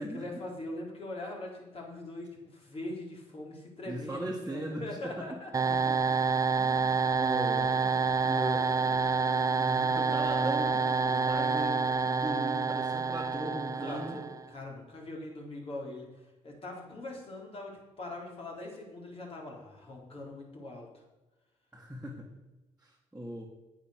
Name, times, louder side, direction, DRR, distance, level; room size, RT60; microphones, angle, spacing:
voice 1, 0.1-5.8 13.8-20.9, left 2 dB, 45° left, -1 dB, 3.9 m, -42 dB
voice 2, 3.9-5.2 5.7-6.0 6.6-9.1 9.6-14.2 21.7-22.3 22.8-23.5, right 1 dB, 10° right, -3 dB, 1.9 m, -39 dB
sound 1, 5.5-14.5, right 4 dB, 25° right, 0.5 m, -28 dB
8.8 x 8.2 x 6.5 m, 1.1 s
cardioid pair, 75°, 13 cm